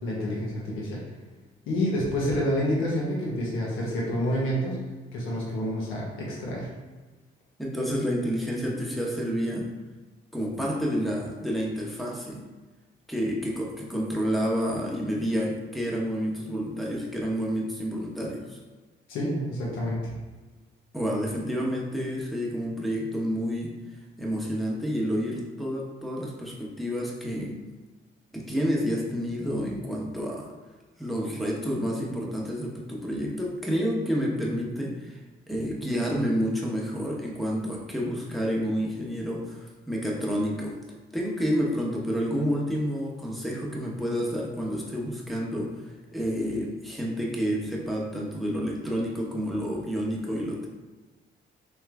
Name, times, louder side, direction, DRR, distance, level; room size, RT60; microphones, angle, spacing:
voice 1, 0.0-1.0 1.7-4.8 5.1-6.7 19.1-20.0, equal, 90° left, -4 dB, 1.1 m, -28 dB
voice 2, 7.6-9.7 10.3-12.4 13.1-18.6 20.9-23.7 24.2-27.6 28.3-30.5 31.0-35.2 35.5-40.7 41.1-45.7 46.1-50.7, equal, ahead, -2 dB, 0.9 m, -29 dB
3.4 x 3.1 x 3.4 m, 1.3 s
cardioid pair, 90°, 20 cm